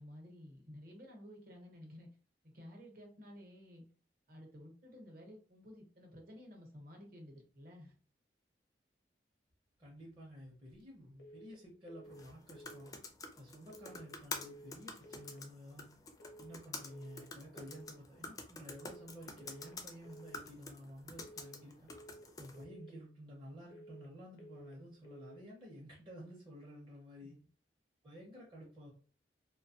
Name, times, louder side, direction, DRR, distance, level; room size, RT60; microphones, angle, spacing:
voice 1, 0.0-2.1 2.4-3.8 4.3-8.0 27.2-27.3, equal, 55° right, 1 dB, 0.9 m, -53 dB
voice 2, 9.8-12.9 13.4-15.9 16.4-21.9 22.4-27.4 28.0-28.9, equal, 25° right, -5 dB, 0.6 m, -52 dB
sound 1, 11.2-11.6 11.9-12.3 12.5-12.9 13.7-14.1 14.4-14.8 15.0-15.4 16.2-16.6 16.9-17.3 17.5-17.9 18.7-19.1 19.4-19.8 20.0-20.4 21.2-21.6 21.9-22.3 22.5-22.9 23.7-24.1 24.4-24.8 25.0-25.4, right 1 dB, 70° left, 0.6 m, -55 dB
sound 2, 12.1-22.6, left 3 dB, 20° left, 0.4 m, -49 dB
2.6 x 2.2 x 2.7 m, 0.40 s
head